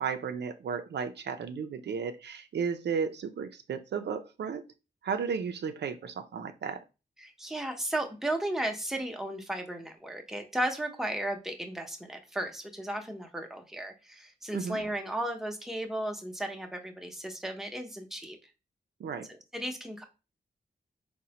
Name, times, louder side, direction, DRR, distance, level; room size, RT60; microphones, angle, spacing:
voice 1, 0.0-4.7 5.0-6.8 14.5-14.8 19.0-19.3, right 6 dB, 75° right, 7 dB, 0.4 m, -34 dB
voice 2, 7.2-18.4 19.5-20.1, right 1 dB, ahead, 3 dB, 0.7 m, -35 dB
3.8 x 2.1 x 2.8 m, 0.29 s
cardioid pair, 55°, 18 cm